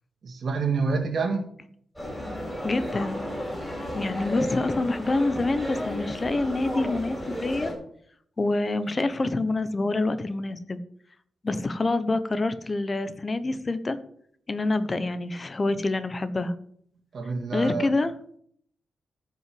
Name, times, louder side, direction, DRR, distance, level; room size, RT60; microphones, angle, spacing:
voice 1, 0.2-1.5 17.1-17.9, right 4 dB, 50° right, 2 dB, 2.2 m, -27 dB
sound 1, 2.0-7.7, equal, ahead, 5.1 m, -33 dB
voice 2, 2.6-3.2 3.9-7.7 8.4-10.8 11.4-14.0 14.5-16.5 17.5-18.1, left 2 dB, 25° left, 12 dB, 1.0 m, -26 dB
14.0 x 5.8 x 7.8 m, 0.64 s
wide cardioid pair, 150°, 0 cm